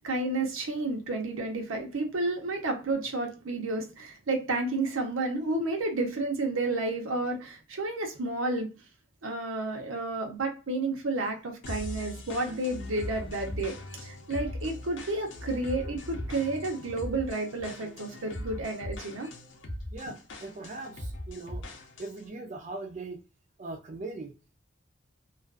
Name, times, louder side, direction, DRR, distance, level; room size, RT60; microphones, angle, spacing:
voice 1, 0.0-8.7 9.2-19.3, right 2 dB, 85° right, 0.8 m, -31 dB
sound 1, 11.6-22.3, left 1 dB, 65° left, 0.6 m, -40 dB
voice 2, 19.9-21.6 22.0-23.2 23.6-24.3, right 2 dB, 35° right, 0.4 m, -40 dB
2.4 x 2.4 x 2.3 m
head